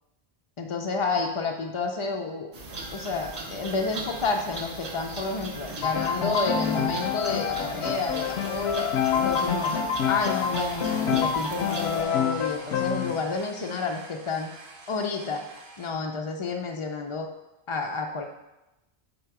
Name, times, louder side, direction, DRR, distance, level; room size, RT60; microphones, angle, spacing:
voice 1, 0.6-2.5 2.9-9.8 10.1-14.5 14.9-15.4 15.8-17.3 17.7-18.3, left 4 dB, 55° left, 2 dB, 0.3 m, -30 dB
sound 1, 2.5-12.0, right 2 dB, 40° right, 0.8 m, -38 dB
sound 2, 2.6-15.9, right 2 dB, 70° right, 1.1 m, -46 dB
Piano, 5.8-13.1, left 7 dB, 75° left, 0.8 m, -27 dB
7.9 x 3.5 x 4.7 m, 0.97 s
omnidirectional pair, 1.1 m